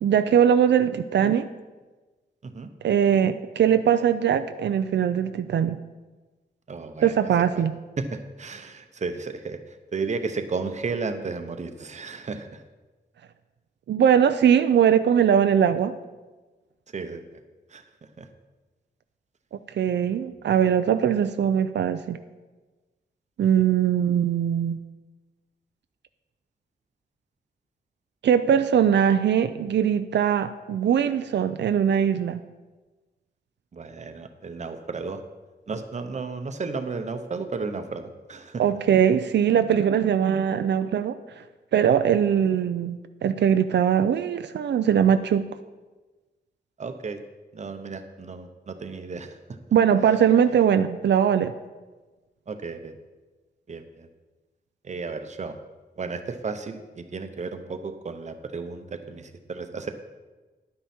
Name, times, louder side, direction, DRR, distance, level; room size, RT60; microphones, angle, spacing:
voice 1, 0.0-1.5 2.8-5.8 7.0-7.7 13.9-15.9 19.8-22.2 23.4-24.8 28.2-32.4 38.6-41.4 41.7-45.5 49.7-51.5, right 8 dB, 85° right, 9 dB, 0.5 m, -21 dB
voice 2, 6.7-7.1 8.0-12.6 16.9-17.4 17.7-18.3 23.6-23.7 33.7-35.2 35.7-38.6 46.8-47.2 47.5-49.4 52.5-52.9 53.7-54.1 54.8-55.6 56.0-59.9, right 4 dB, 40° right, 7 dB, 0.8 m, -33 dB
10.5 x 9.2 x 4.3 m, 1.2 s
wide cardioid pair, 145°, 18 cm